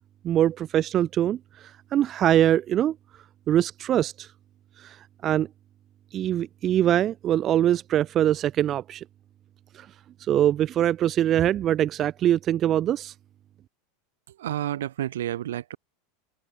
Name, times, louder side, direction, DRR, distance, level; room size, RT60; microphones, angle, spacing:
voice 1, 0.2-2.9 3.5-4.3 4.8-5.0 5.2-5.5 6.1-9.0 9.7-9.9 10.3-13.1, right 11 dB, 40° right, 3.3 m, -23 dB
voice 2, 14.3-15.8, right 12 dB, 75° right, 5.8 m, -30 dB
hypercardioid pair, 85°, 0 cm